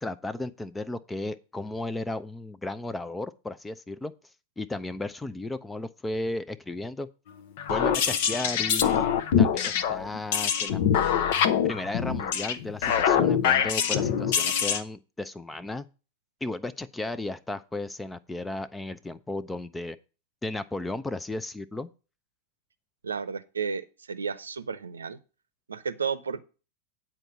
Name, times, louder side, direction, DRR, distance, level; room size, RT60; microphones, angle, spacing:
voice 1, 0.0-4.1 4.6-7.1 7.7-9.1 9.4-10.8 11.6-15.9 16.4-20.0 20.4-21.9, left 2 dB, 10° left, 0.6 m, -34 dB
sound 1, 7.6-14.8, left 8 dB, 50° left, 0.9 m, -24 dB
voice 2, 23.0-23.8 24.1-25.2 25.7-26.4, right 6 dB, 75° right, 0.7 m, -32 dB
9.1 x 4.4 x 7.2 m
figure-of-eight pair, 90°, 0 cm